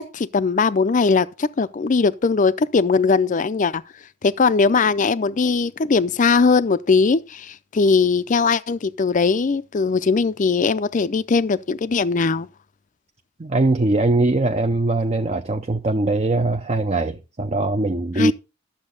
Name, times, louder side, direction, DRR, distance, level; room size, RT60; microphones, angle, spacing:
voice 1, 0.0-3.8 4.2-12.5 18.2-18.3, left 4 dB, 40° left, 0.4 m, -20 dB
voice 2, 13.4-18.3, right 2 dB, 30° right, 0.5 m, -21 dB
12.0 x 7.2 x 3.9 m
head